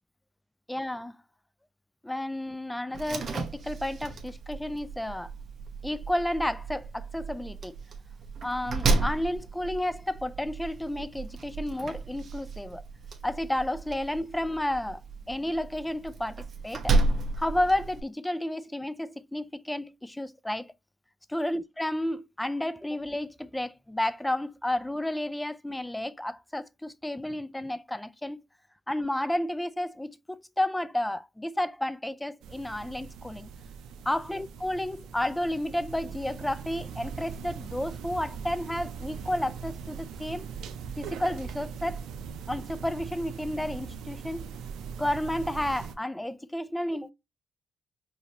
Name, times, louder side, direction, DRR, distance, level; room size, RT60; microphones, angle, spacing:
voice 1, 0.7-1.2 2.0-5.3 5.8-7.8 8.4-12.8 13.2-15.0 15.3-17.0 17.4-20.7 21.3-28.4 28.9-33.5 34.1-40.5 41.0-42.0 42.5-44.4 45.0-47.1, left 1 dB, 10° left, 0.3 m, -31 dB
Slam, 2.9-18.0, right 3 dB, 50° right, 0.9 m, -33 dB
sound 1, 32.4-45.9, right 6 dB, 85° right, 0.5 m, -40 dB
4.9 x 2.7 x 2.8 m
cardioid pair, 90°, 0 cm